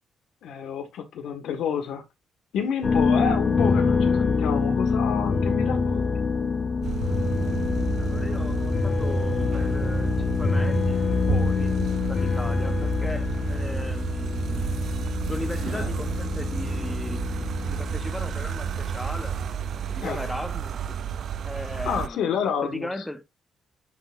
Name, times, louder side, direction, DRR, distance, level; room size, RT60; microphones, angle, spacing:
voice 1, 0.4-2.0 2.5-6.1 15.7-15.9 20.0-20.2 21.8-22.9, left 7 dB, 80° left, 1.6 m, -29 dB
sound 1, 2.8-19.4, left 4 dB, 35° left, 1.1 m, -26 dB
sound 2, 6.8-22.1, right 8 dB, 60° right, 0.4 m, -32 dB
voice 2, 8.0-11.0 11.3-11.7 12.1-14.7 15.3-19.4 19.9-21.0 21.4-23.2, left 1 dB, 10° left, 1.0 m, -37 dB
Bowed string instrument, 11.3-13.8, right 4 dB, 80° right, 0.9 m, -33 dB
10.5 x 4.1 x 2.6 m
cardioid pair, 90°, 0 cm